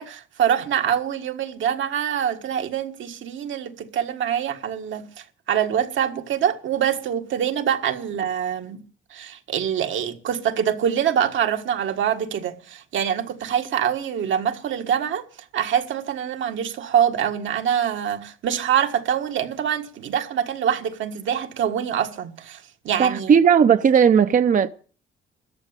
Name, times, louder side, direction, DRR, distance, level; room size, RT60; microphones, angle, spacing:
voice 1, 0.0-5.1 5.5-8.8 9.1-15.2 15.5-23.4, right 9 dB, 75° right, 1.6 m, -25 dB
voice 2, 23.0-24.7, right 7 dB, 40° right, 0.6 m, -16 dB
14.0 x 9.3 x 8.9 m
cardioid pair, 90°, 20 cm